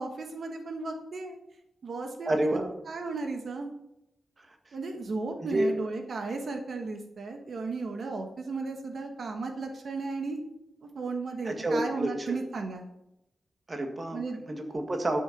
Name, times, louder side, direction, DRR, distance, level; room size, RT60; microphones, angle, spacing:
voice 1, 0.0-1.4 1.8-2.5 2.9-3.7 4.7-12.8 14.1-14.4, right 3 dB, 60° right, 4 dB, 1.3 m, -35 dB
voice 2, 2.2-2.7 4.4-4.7 5.4-5.7 11.4-12.4 13.7-15.2, right 1 dB, 30° right, 4 dB, 1.7 m, -30 dB
12.0 x 6.4 x 5.9 m, 0.86 s
wide cardioid pair, 150°, 0 cm